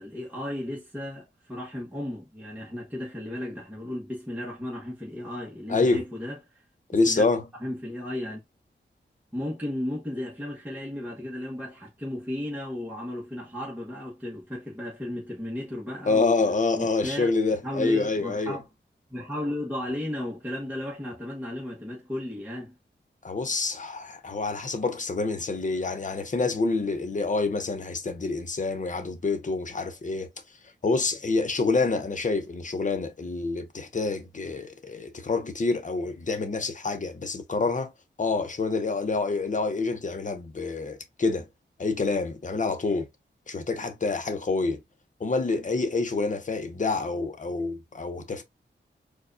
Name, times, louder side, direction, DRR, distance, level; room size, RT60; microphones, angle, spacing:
voice 1, 0.0-6.4 7.1-7.3 7.6-8.4 9.3-16.3 16.7-17.3 17.6-18.6 19.1-22.8, left 1 dB, 10° right, 1.2 m, -34 dB
voice 2, 5.7-6.0 6.9-7.5 16.1-18.6 23.2-30.3 30.8-37.9 38.2-41.5 41.8-43.1 43.5-44.8 45.2-48.4, left 3 dB, 40° left, 0.8 m, -27 dB
4.6 x 2.4 x 2.6 m
wide cardioid pair, 120°, 20 cm